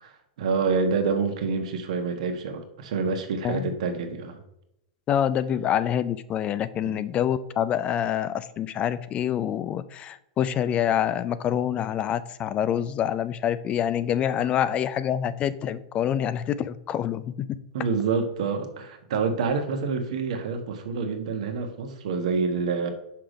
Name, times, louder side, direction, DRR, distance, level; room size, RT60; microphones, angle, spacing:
voice 1, 0.0-4.4 6.8-7.0 17.7-22.9, right 5 dB, 70° right, 5 dB, 1.2 m, -27 dB
voice 2, 3.4-3.7 5.1-17.5, left 10 dB, 30° left, 15 dB, 0.4 m, -26 dB
5.8 x 4.9 x 4.9 m, 0.83 s
hypercardioid pair, 110°, 4 cm